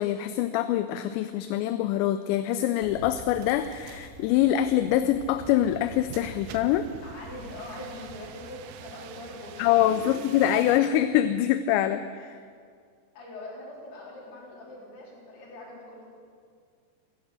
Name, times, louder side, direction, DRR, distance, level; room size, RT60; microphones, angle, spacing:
voice 1, 0.0-6.9 9.6-12.4, left 11 dB, 85° left, 10 dB, 2.8 m, -24 dB
Bicycle, 2.7-8.2, right 1 dB, 40° left, 2.2 m, -47 dB
sound 1, 3.4-10.8, right 9 dB, 85° right, 3.1 m, -47 dB
voice 2, 7.0-10.2 13.1-16.0, left 2 dB, 65° left, -4 dB, 5.7 m, -42 dB
15.5 x 11.5 x 8.1 m, 2.1 s
omnidirectional pair, 5.1 m